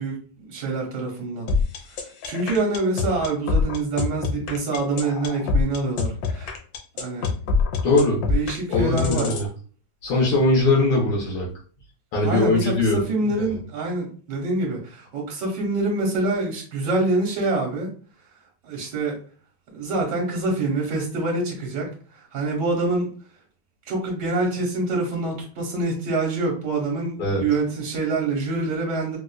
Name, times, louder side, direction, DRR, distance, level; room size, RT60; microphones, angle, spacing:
voice 1, 0.0-1.5 2.2-6.6 6.9-7.3 8.3-9.4 12.2-17.9 18.6-19.2 19.7-21.9 22.2-23.1 23.9-29.2, right 2 dB, 60° right, -1 dB, 1.5 m, -26 dB
sound 1, 1.5-9.5, left 4 dB, 70° left, 1.3 m, -24 dB
voice 2, 7.8-8.2 8.7-9.5 10.0-11.5 12.1-13.6 27.2-27.4, left 2 dB, 85° left, -5 dB, 1.9 m, -21 dB
4.4 x 2.4 x 2.3 m, 0.41 s
omnidirectional pair, 2.2 m